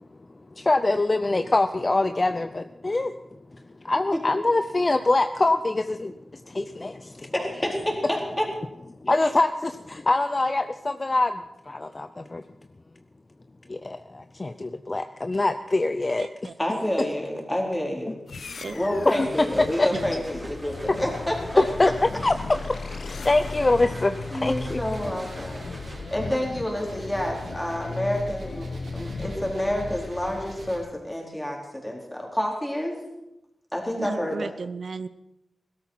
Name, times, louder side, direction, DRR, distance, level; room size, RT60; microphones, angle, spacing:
voice 1, 0.6-3.1 3.8-7.3 9.0-12.4 13.7-16.3 19.1-19.3 19.8-19.9 21.6-21.9 22.2-22.3 23.1-24.8, left 2 dB, 35° left, 9 dB, 0.6 m, -24 dB
voice 2, 7.3-8.5 16.6-18.2 18.7-21.6 24.3-25.7 26.1-28.7 28.9-33.0 33.7-34.5, left 1 dB, 10° left, -1 dB, 4.3 m, -28 dB
voice 3, 16.2-16.5 18.6-18.8 19.9-20.1 34.0-35.1, right 4 dB, 65° right, 13 dB, 0.6 m, -35 dB
sound 1, 18.3-30.9, left 4 dB, 75° left, 1.0 m, -36 dB
sound 2, 19.0-26.3, right 1 dB, 25° right, 3.1 m, -46 dB
sound 3, 23.4-30.8, right 1 dB, 85° right, 3.8 m, -43 dB
16.5 x 13.0 x 5.8 m, 0.90 s
wide cardioid pair, 80°, 0 cm